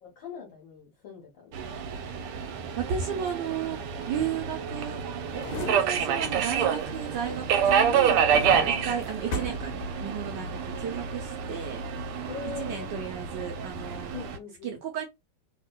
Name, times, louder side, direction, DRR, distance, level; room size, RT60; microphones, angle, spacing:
voice 1, 0.0-1.5 3.1-3.6 8.7-9.0 12.3-13.0 14.1-14.8, left 6 dB, 65° left, 1.5 m, -42 dB
Subway metro underground, 1.5-14.4, right 7 dB, 90° right, 1.5 m, -28 dB
voice 2, 2.8-3.8 4.1-5.0 5.3-8.2 8.6-9.7 10.0-11.8 12.6-14.1 14.6-15.1, right 8 dB, 70° right, 1.1 m, -34 dB
sound 1, 5.2-6.9 7.3-10.4 10.7-10.8, left 2 dB, 85° left, 1.6 m, -37 dB
3.5 x 2.7 x 2.2 m
omnidirectional pair, 2.4 m